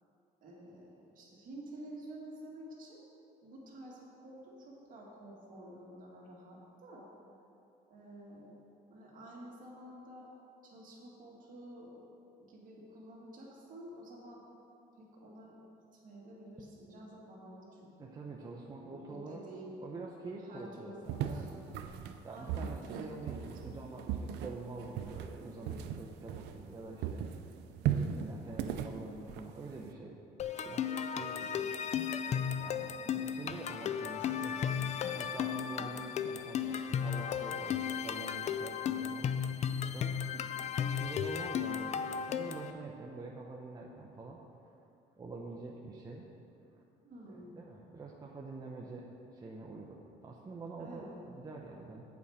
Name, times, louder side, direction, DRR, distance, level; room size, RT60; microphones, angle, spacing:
voice 1, 0.4-3.0 3.4-7.1 7.9-8.6 8.9-10.3 10.6-12.1 12.3-14.4 15.0-15.6 15.9-18.1 18.9-19.7 20.3-21.9 22.3-23.8 33.0-33.4 34.2-34.9 39.6-39.9 40.3-40.9 47.0-47.7 50.8-51.2, right 1 dB, 55° right, -3 dB, 2.2 m, -51 dB
voice 2, 18.0-19.4 19.8-21.5 22.2-27.3 27.8-30.2 30.6-31.7 32.6-34.6 35.0-39.3 39.9-40.1 40.8-44.4 45.2-46.3 47.6-52.0, right 3 dB, 25° right, -2 dB, 0.7 m, -46 dB
sound 1, 21.1-26.8 27.0-29.9, right 9 dB, 85° right, 0.5 m, -37 dB
sound 2, 30.4-42.7, left 8 dB, 40° left, 0.4 m, -35 dB
8.3 x 4.8 x 7.1 m, 2.7 s
cardioid pair, 110°, 17 cm